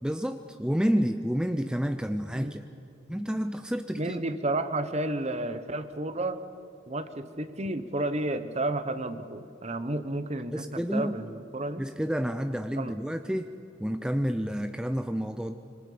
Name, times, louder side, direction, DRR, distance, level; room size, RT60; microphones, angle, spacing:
voice 1, 0.0-2.6 3.1-4.2 10.5-11.1 11.8-13.5 13.8-15.6, equal, 5° right, 7 dB, 0.5 m, -29 dB
voice 2, 4.0-6.4 6.9-11.8 12.8-12.9, right 2 dB, 35° right, 11 dB, 1.0 m, -31 dB
25.5 x 25.5 x 5.1 m, 2.7 s
head